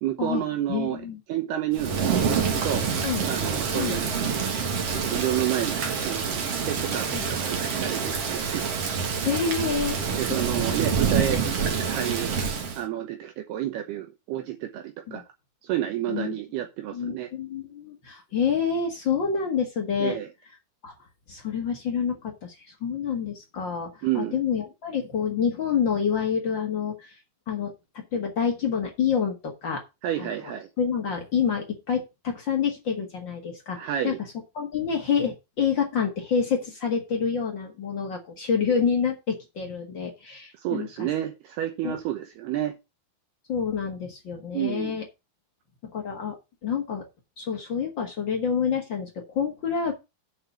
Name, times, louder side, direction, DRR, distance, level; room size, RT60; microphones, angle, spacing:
voice 1, 0.0-1.0 1.3-2.9 3.2-4.1 4.9-8.7 10.2-12.5 12.7-15.2 15.6-17.3 20.0-20.3 24.0-24.4 30.0-30.7 33.7-34.2 40.6-42.8 44.5-45.0, right 12 dB, 75° right, 2.9 m, -30 dB
voice 2, 0.7-1.2 3.0-3.2 3.7-4.0 7.1-7.2 9.2-10.0 15.1-15.2 16.1-16.4 16.9-20.2 20.8-20.9 21.3-22.5 22.8-27.1 27.5-29.8 30.2-30.3 30.8-34.1 34.5-40.9 41.8-41.9 43.5-45.0 45.9-46.4 46.6-47.0 47.4-49.9, left 6 dB, 80° left, 1.0 m, -27 dB
Thunder / Rain, 1.7-12.8, right 6 dB, 55° right, 1.8 m, -27 dB
8.0 x 5.3 x 7.1 m
omnidirectional pair, 5.0 m